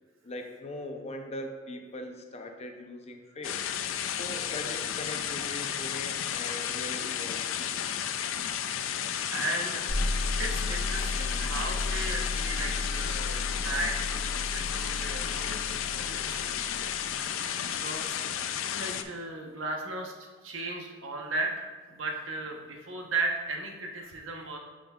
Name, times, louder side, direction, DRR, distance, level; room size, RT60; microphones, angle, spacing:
voice 1, 0.2-3.6 4.1-7.9 12.5-12.7, left 1 dB, 35° left, 5 dB, 0.6 m, -41 dB
sound 1, 3.4-19.0, left 9 dB, 85° left, 0.4 m, -33 dB
voice 2, 9.0-9.8 10.4-16.5 17.6-18.0 18.7-20.1 20.4-24.6, right 2 dB, 90° right, 2 dB, 0.9 m, -35 dB
sound 2, 9.9-17.4, left 2 dB, 70° left, 0.9 m, -34 dB
8.8 x 5.1 x 2.3 m, 1.4 s
head